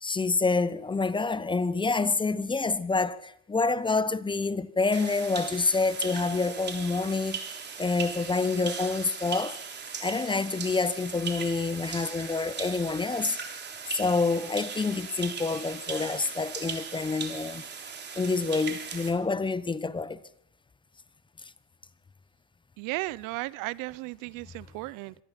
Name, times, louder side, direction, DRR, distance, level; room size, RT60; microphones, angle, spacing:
voice 1, 0.0-9.6 10.0-13.4 13.9-17.6 18.2-20.2, left 3 dB, 15° left, 0.8 m, -27 dB
sound 1, 4.9-19.1, right 6 dB, 25° right, 3.5 m, -38 dB
voice 2, 22.8-25.1, right 21 dB, 55° right, 0.7 m, -35 dB
25.5 x 18.0 x 5.9 m
supercardioid pair, 105°, 38 cm